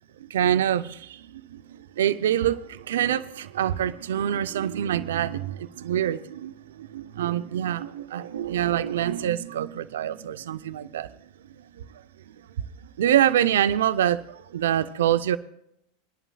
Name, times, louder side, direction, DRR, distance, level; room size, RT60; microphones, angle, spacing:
voice 1, 0.3-1.2 1.5-6.5 6.9-11.1 13.0-14.2 14.5-15.4, right 11 dB, 75° right, 0.6 m, -25 dB
26.0 x 11.0 x 2.3 m
hypercardioid pair, 95°, 0 cm